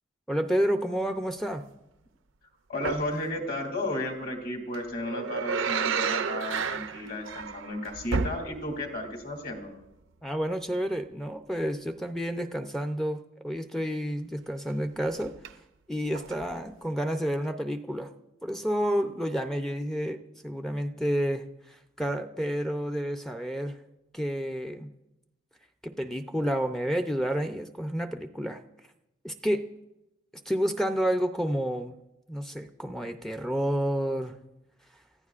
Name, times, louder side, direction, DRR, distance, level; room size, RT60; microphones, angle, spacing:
voice 1, 0.3-1.6 10.2-15.3 15.9-18.1 18.4-23.8 24.1-24.9 25.8-28.6 29.2-29.7 30.5-31.9 32.3-34.3, equal, ahead, 6 dB, 0.5 m, -30 dB
voice 2, 2.7-9.7, left 1 dB, 50° left, 2 dB, 2.8 m, -33 dB
sound 1, 2.8-3.2 4.7-8.9 9.2-9.3 15.1-15.5 16.1-16.6 17.4-17.5, right 5 dB, 80° right, 0.6 m, -31 dB
29.0 x 15.0 x 2.5 m, 0.91 s
head